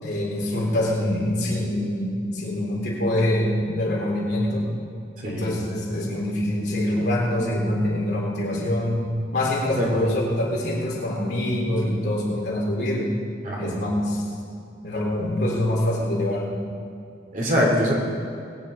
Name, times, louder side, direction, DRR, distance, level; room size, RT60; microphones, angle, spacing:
voice 1, 0.0-4.7 5.2-9.1 9.3-13.1 13.6-14.2 14.8-16.5, left 1 dB, 65° left, -4 dB, 3.9 m, -25 dB
voice 2, 5.2-5.5 9.7-9.9 13.4-13.8 17.3-17.9, equal, 45° right, -2 dB, 3.1 m, -23 dB
21.5 x 9.3 x 5.3 m, 2.5 s
head